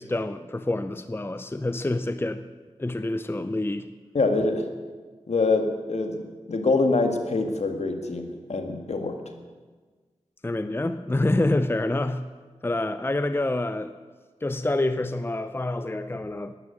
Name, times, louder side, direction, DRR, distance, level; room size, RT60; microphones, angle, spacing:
voice 1, 0.0-2.4 2.8-3.9 10.4-12.2 12.6-13.9 14.4-16.5, left 2 dB, 20° left, 11 dB, 0.7 m, -27 dB
voice 2, 4.1-4.7 5.3-9.2, left 3 dB, 65° left, 5 dB, 1.9 m, -25 dB
12.5 x 11.0 x 8.9 m, 1.4 s
cardioid pair, 45°, 12 cm